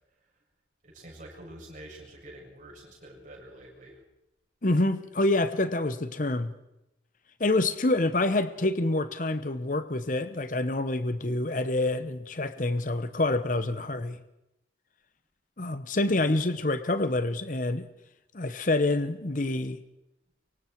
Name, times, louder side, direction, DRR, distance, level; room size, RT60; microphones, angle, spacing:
voice 1, 0.8-4.0, right 1 dB, 45° right, -2 dB, 7.3 m, -47 dB
voice 2, 4.6-6.5 7.4-14.2 15.6-17.9 18.3-19.8, left 2 dB, 45° left, 12 dB, 1.0 m, -27 dB
24.5 x 24.0 x 4.6 m, 0.89 s
head